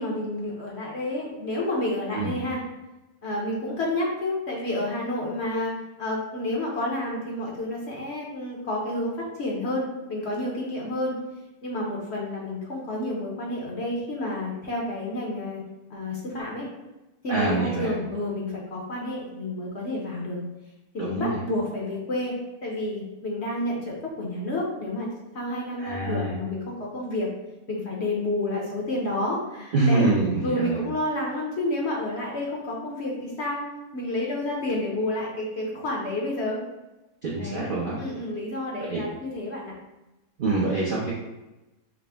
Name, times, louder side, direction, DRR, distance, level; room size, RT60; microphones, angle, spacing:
voice 1, 0.0-2.6 3.2-5.7 6.0-11.2 11.6-15.6 15.9-16.7 17.2-20.4 20.9-22.3 22.6-25.1 25.3-27.3 27.7-30.1 30.4-33.6 33.9-36.6 37.4-37.7 38.0-39.7, left 1 dB, 55° left, -3 dB, 0.8 m, -30 dB
voice 2, 17.3-17.9 21.0-21.4 25.8-26.3 29.7-30.8 37.2-38.0 38.8-39.0 40.4-41.1, right 3 dB, 60° right, -6 dB, 0.6 m, -25 dB
4.9 x 2.0 x 3.4 m, 1.0 s
omnidirectional pair, 1.7 m